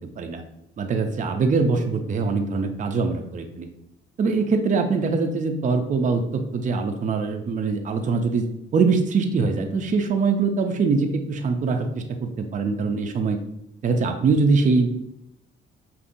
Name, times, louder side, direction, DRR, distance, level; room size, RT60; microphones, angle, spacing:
voice 1, 0.8-3.7 4.2-8.5 8.7-13.4 13.8-14.9, right 4 dB, 40° right, 5 dB, 0.5 m, -23 dB
5.2 x 2.6 x 2.6 m, 0.81 s
cardioid pair, 90°, 20 cm